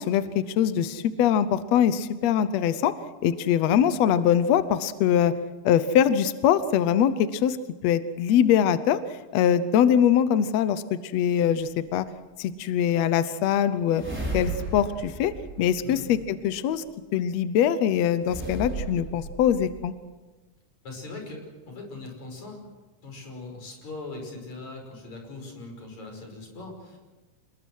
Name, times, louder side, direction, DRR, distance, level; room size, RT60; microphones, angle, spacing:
voice 1, 0.0-2.9 3.2-5.3 5.6-7.6 7.8-12.0 12.4-14.0 14.3-16.8 17.1-19.9, left 9 dB, 75° left, 13 dB, 1.6 m, -23 dB
sound 1, 11.6-11.7 13.9-16.4 18.2-19.9, right 2 dB, 5° right, 4.9 m, -35 dB
voice 2, 20.8-22.7 23.0-27.0, left 3 dB, 55° left, 2 dB, 6.7 m, -40 dB
27.5 x 20.5 x 6.3 m, 1.2 s
omnidirectional pair, 4.0 m